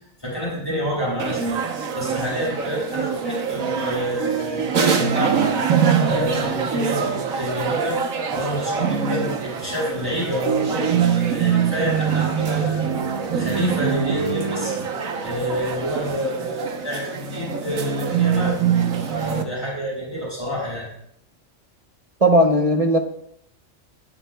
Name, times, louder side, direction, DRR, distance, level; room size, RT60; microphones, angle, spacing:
voice 1, 0.2-1.6 1.9-8.0 8.3-14.8 15.2-18.6 19.0-20.9, equal, 15° left, -7 dB, 5.6 m, -28 dB
sound 1, 1.2-19.4, right 6 dB, 85° right, 1.4 m, -24 dB
voice 2, 22.2-23.0, equal, 30° right, 3 dB, 0.8 m, -16 dB
22.0 x 8.7 x 2.3 m, 0.70 s
omnidirectional pair, 1.4 m